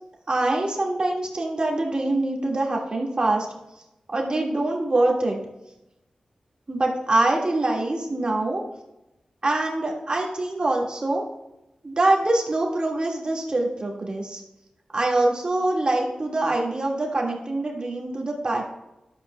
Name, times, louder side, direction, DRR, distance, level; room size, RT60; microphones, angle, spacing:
voice 1, 0.3-3.5 4.1-5.4 6.7-8.6 9.4-11.2 11.8-14.4 14.9-18.6, right 2 dB, 45° right, 0 dB, 1.8 m, -24 dB
11.5 x 7.8 x 2.2 m, 0.90 s
cardioid pair, 65°, 2 cm